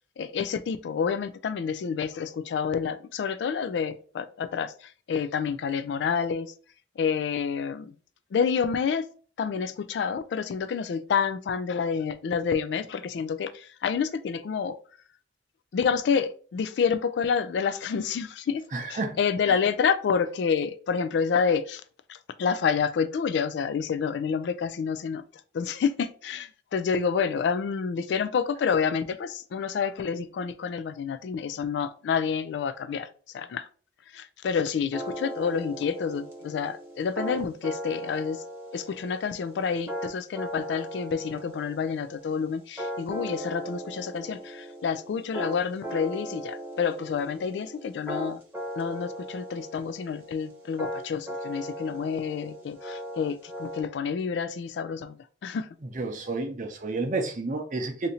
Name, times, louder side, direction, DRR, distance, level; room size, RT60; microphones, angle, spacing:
voice 1, 0.2-6.5 7.0-7.9 8.3-9.1 9.4-14.8 15.7-21.8 22.1-25.2 25.5-33.1 33.3-33.7 34.1-38.4 38.7-48.4 48.8-55.7, left 6 dB, 70° left, 0.3 m, -28 dB
voice 2, 18.7-19.2 19.5-19.6 55.9-58.1, right 3 dB, 45° right, 0.6 m, -30 dB
sound 1, 34.9-53.8, right 1 dB, 10° right, 0.9 m, -38 dB
2.8 x 2.6 x 4.1 m
head